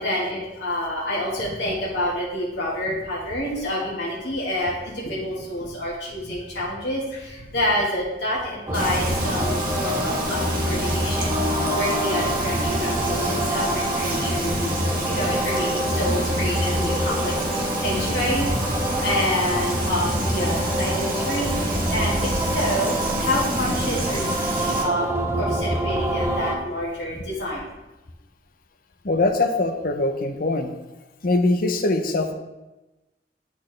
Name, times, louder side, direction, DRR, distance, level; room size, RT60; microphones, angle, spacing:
voice 1, 0.0-11.4 11.7-27.7, left 1 dB, 70° left, -6 dB, 1.5 m, -28 dB
sound 1, 8.7-26.6, equal, 15° right, 0.6 m, -26 dB
Frying (food), 8.7-24.8, right 1 dB, 55° right, 1.4 m, -29 dB
voice 2, 29.0-30.7 31.2-32.3, left 2 dB, 55° left, 6 dB, 0.7 m, -22 dB
10.5 x 4.2 x 3.2 m, 1.0 s
head